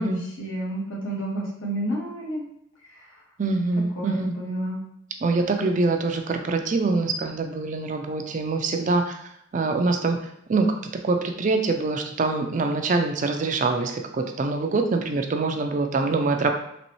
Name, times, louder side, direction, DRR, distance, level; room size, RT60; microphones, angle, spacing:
voice 1, 0.4-2.4 2.9-3.1 3.9-4.8, right 1 dB, 75° left, -4 dB, 1.5 m, -30 dB
voice 2, 3.4-4.3 5.2-9.2 9.5-10.2 10.5-10.7 11.0-16.5, right 3 dB, 40° right, 5 dB, 0.4 m, -24 dB
4.1 x 3.0 x 3.0 m, 0.74 s
head